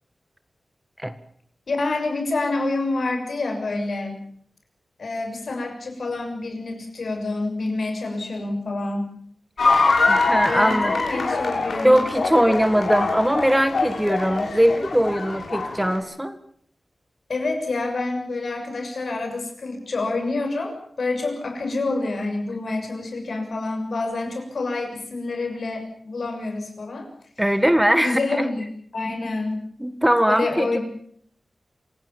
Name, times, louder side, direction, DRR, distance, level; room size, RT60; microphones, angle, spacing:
voice 1, 1.7-4.2 5.0-9.1 10.4-12.1 17.3-27.1 28.0-29.6 30.3-30.8, left 2 dB, 70° left, 4 dB, 6.7 m, -27 dB
sound 1, 9.6-16.0, left 3 dB, 85° left, 6.5 m, -23 dB
voice 2, 10.1-10.9 11.7-16.4 27.4-28.2 29.8-30.8, equal, 5° right, 10 dB, 1.6 m, -20 dB
27.0 x 18.5 x 7.1 m, 0.63 s
wide cardioid pair, 105°, 0 cm